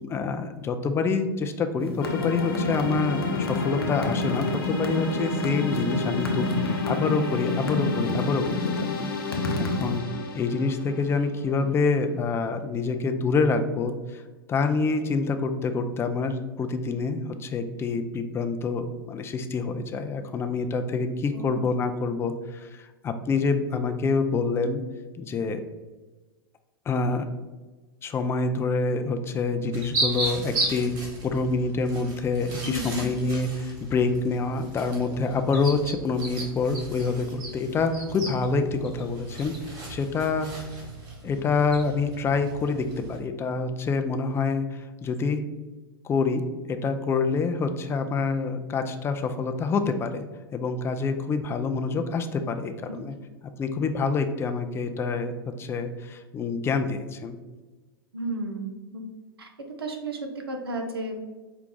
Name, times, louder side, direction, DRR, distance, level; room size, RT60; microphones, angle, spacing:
voice 1, 0.0-9.1 9.6-10.0 10.3-14.2 14.5-24.8 25.2-25.6 26.9-27.3 28.0-31.0 31.2-40.5 41.2-45.4 46.0-46.4 46.7-50.2 50.5-53.1 53.6-55.3 55.6-57.4, left 4 dB, 20° left, 7 dB, 0.4 m, -27 dB
sound 1, 1.8-10.0, left 3 dB, 90° left, 0.6 m, -29 dB
sound 2, 2.0-12.0, left 3 dB, 60° left, 0.9 m, -32 dB
sound 3, 29.7-43.2, right 2 dB, 35° right, 1.5 m, -35 dB
voice 2, 32.6-33.1 58.1-59.0 59.4-59.5 59.8-61.3, right 1 dB, 80° right, 4 dB, 0.7 m, -33 dB
4.7 x 2.3 x 3.7 m, 1.2 s
hypercardioid pair, 100°, 12 cm